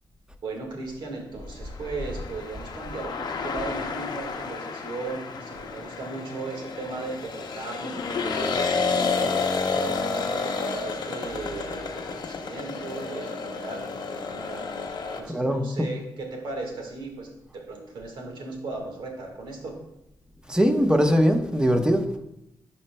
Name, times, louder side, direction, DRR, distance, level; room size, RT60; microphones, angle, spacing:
voice 1, 0.4-14.7 15.1-17.3 17.5-19.7, right 3 dB, 80° right, 1 dB, 1.6 m, -37 dB
sound 1, 1.7-15.2, left 4 dB, 65° left, 0.7 m, -30 dB
voice 2, 15.3-15.9 20.5-22.0, equal, 10° right, 5 dB, 0.9 m, -21 dB
12.0 x 4.3 x 2.2 m, 0.85 s
cardioid pair, 65°, 8 cm